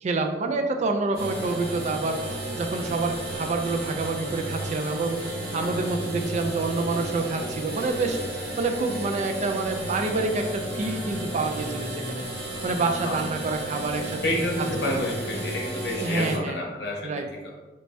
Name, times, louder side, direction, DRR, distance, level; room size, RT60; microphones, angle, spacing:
voice 1, 0.0-2.2 2.5-5.2 5.5-8.2 8.6-12.2 12.6-14.2 16.0-16.6 17.0-17.2, right 3 dB, 40° right, 5 dB, 0.3 m, -27 dB
sound 1, 1.1-16.4, right 1 dB, 60° right, 1.1 m, -33 dB
voice 2, 14.2-17.5, left 1 dB, 65° left, -1 dB, 0.8 m, -29 dB
3.2 x 2.7 x 3.2 m, 1.2 s
head